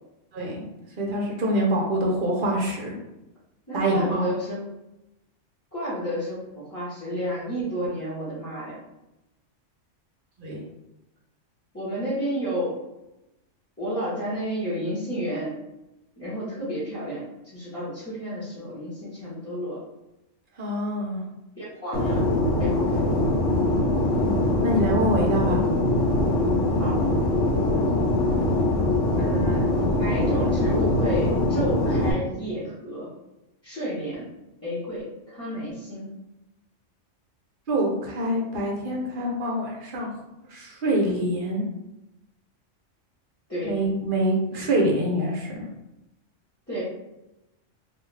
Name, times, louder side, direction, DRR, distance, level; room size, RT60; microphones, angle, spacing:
voice 1, 0.3-0.6 1.0-2.9 3.7-4.2 10.4-10.6 20.6-21.2 24.1-25.6 37.7-40.1 40.5-41.6 43.6-45.6, right 1 dB, 55° right, -2 dB, 0.7 m, -25 dB
voice 2, 3.7-4.6 5.7-8.8 11.7-12.7 13.8-15.5 16.2-19.8 21.6-22.3 22.5-23.1 26.8-27.0 29.2-33.1 33.6-34.3 34.6-36.1 43.5-43.8 46.7-46.8, equal, 15° left, -13 dB, 0.7 m, -31 dB
Fixed-wing aircraft airplane, 21.9-32.1, left 1 dB, 70° left, 1.0 m, -22 dB
2.5 x 2.3 x 3.2 m, 0.94 s
omnidirectional pair, 1.3 m